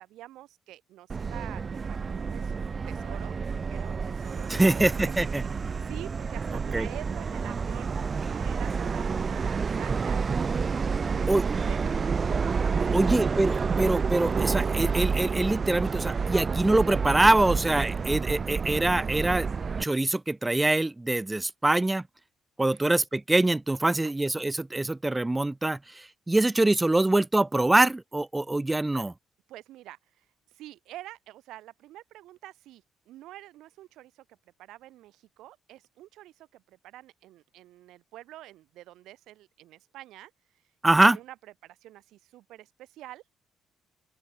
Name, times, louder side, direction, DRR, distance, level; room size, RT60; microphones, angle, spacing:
voice 1, 0.0-3.3 3.7-5.1 5.5-10.2 10.9-11.4 11.7-12.2 12.6-13.0 22.7-22.9 23.8-24.1 28.9-29.1 29.5-34.2 34.6-40.7 41.0-41.3 41.6-43.3, right 15 dB, 80° right, 3.4 m, -47 dB
Subway metro underground, 1.1-19.8, right 5 dB, 45° right, 2.3 m, -29 dB
voice 2, 4.5-5.4 6.7-6.9 11.3-11.4 12.9-19.5 19.8-22.0 22.6-29.1 40.8-41.2, right 2 dB, 15° right, 0.7 m, -24 dB
open air
supercardioid pair, 60°, 0 cm